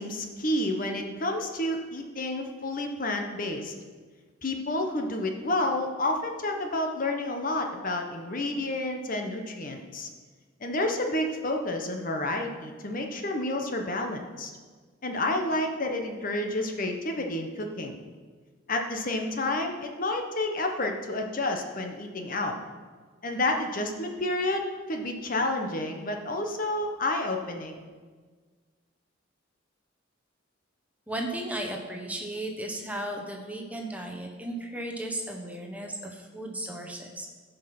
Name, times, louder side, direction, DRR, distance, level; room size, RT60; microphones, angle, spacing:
voice 1, 0.0-3.7 4.4-10.1 10.6-14.5 15.0-17.9 18.7-22.5 23.2-27.8, left 2 dB, 45° left, 3 dB, 1.0 m, -30 dB
voice 2, 31.1-37.3, right 1 dB, 5° right, 2 dB, 1.1 m, -35 dB
16.0 x 5.4 x 5.9 m, 1.5 s
head